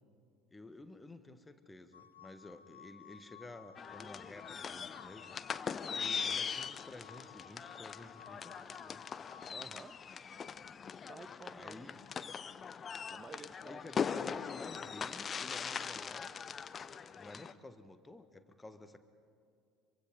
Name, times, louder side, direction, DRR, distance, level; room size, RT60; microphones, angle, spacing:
voice 1, 0.5-5.4 5.9-9.1 11.5-12.0 13.7-16.5 17.2-19.0, left 2 dB, 15° left, 10 dB, 1.5 m, -52 dB
sound 1, 1.9-9.5, left 9 dB, 80° left, 0.8 m, -56 dB
sound 2, 3.8-17.5, left 6 dB, 30° left, 0.6 m, -41 dB
voice 2, 9.5-10.0 11.1-11.9 13.1-14.5, right 4 dB, 25° right, 14 dB, 0.6 m, -52 dB
26.0 x 23.5 x 5.3 m, 2.3 s
figure-of-eight pair, 65°, 0 cm